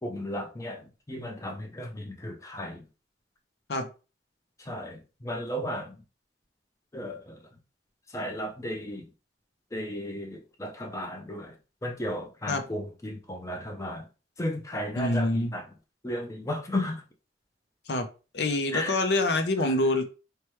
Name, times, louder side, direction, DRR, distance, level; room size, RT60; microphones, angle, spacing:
voice 1, 0.0-2.9 4.6-6.0 6.9-7.5 8.1-9.1 9.7-11.6 11.8-14.1 14.4-15.7 16.0-17.0 18.7-19.0 19.6-19.7, left 1 dB, 20° left, 0.5 m, -34 dB
voice 2, 15.0-15.5 17.9-18.1 18.3-20.0, left 2 dB, 70° left, 0.6 m, -26 dB
3.0 x 2.2 x 3.1 m
head